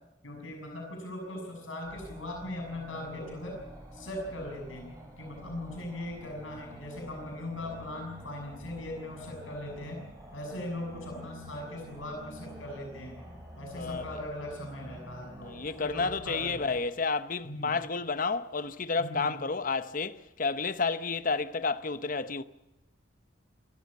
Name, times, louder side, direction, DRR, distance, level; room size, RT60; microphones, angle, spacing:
voice 1, 0.2-3.5 3.9-10.0 10.3-13.2 13.6-16.6 17.4-17.7 19.0-19.3, left 1 dB, 85° left, 6.5 m, -39 dB
sound 1, 1.8-16.8, right 1 dB, 20° right, 6.6 m, -49 dB
voice 2, 13.8-14.2 15.4-22.4, left 4 dB, 45° left, 0.9 m, -31 dB
26.0 x 14.0 x 8.4 m
head